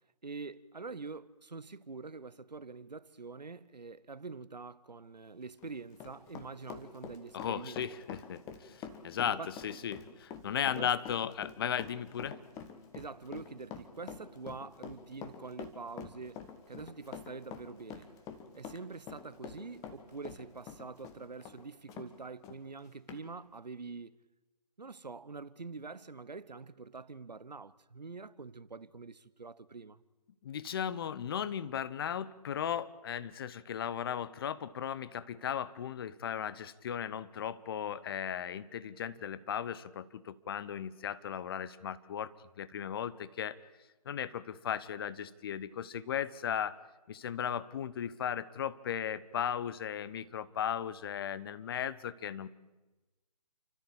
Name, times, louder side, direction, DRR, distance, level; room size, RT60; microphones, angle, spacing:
voice 1, 0.2-7.8 9.3-9.5 10.8-10.9 12.9-18.1 18.5-24.2 24.8-30.0, right 4 dB, 80° right, 1.0 m, -45 dB
Run, 5.4-22.1 22.4-22.6 23.1-23.2, left 7 dB, 15° left, 1.4 m, -46 dB
voice 2, 7.3-12.4 30.4-42.3 42.6-43.6 44.0-46.8 47.1-52.5, left 9 dB, 35° left, 0.9 m, -36 dB
29.5 x 13.5 x 8.6 m
figure-of-eight pair, 145°, 21 cm